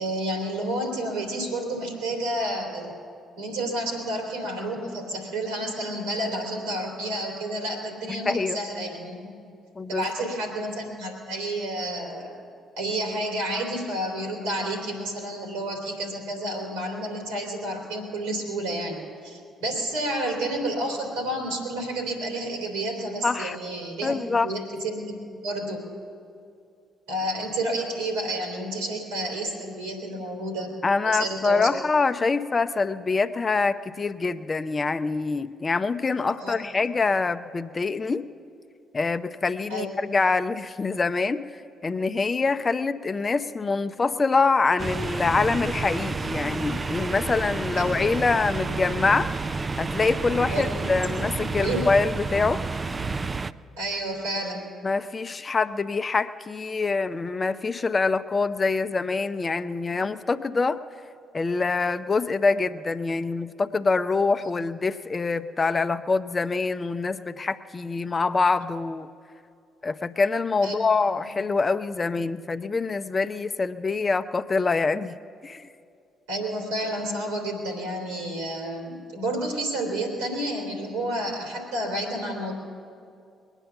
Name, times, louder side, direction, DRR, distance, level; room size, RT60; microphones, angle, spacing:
voice 1, 0.0-2.9 3.4-9.5 9.9-12.4 12.8-25.2 25.4-25.8 27.1-30.7 31.0-31.7 36.4-36.6 39.7-39.9 47.8-47.9 50.5-50.9 51.2-51.8 53.8-54.7 70.6-71.0 71.3-71.4 76.3-82.5, right 1 dB, 85° right, 1 dB, 3.1 m, -30 dB
voice 2, 8.1-8.6 9.8-10.3 23.2-23.6 24.0-24.5 30.8-38.2 38.9-41.5 41.8-49.3 49.8-52.6 54.8-60.8 61.3-69.1 69.8-75.2 75.4-75.7, left 4 dB, 35° left, 10 dB, 0.5 m, -25 dB
sound 1, 44.8-53.5, right 3 dB, 35° right, 0.4 m, -30 dB
21.5 x 9.0 x 6.9 m, 2.4 s
hypercardioid pair, 45°, 0 cm